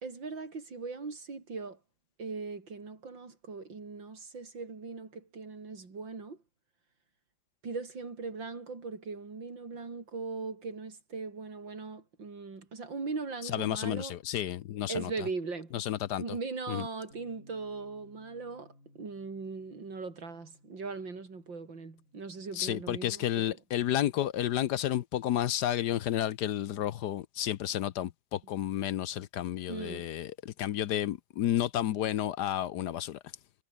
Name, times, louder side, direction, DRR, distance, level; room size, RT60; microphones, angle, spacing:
voice 1, 0.0-1.8 2.2-6.4 7.6-14.2 14.9-15.8 16.2-23.6 29.7-30.1, right 4 dB, 80° right, 4.5 m, -39 dB
voice 2, 13.4-15.1 15.7-16.2 16.7-16.9 22.5-33.2, left 12 dB, 70° left, 1.3 m, -31 dB
Bass guitar, 17.1-23.4, left 2 dB, 45° left, 7.5 m, -62 dB
omnidirectional pair, 2.0 m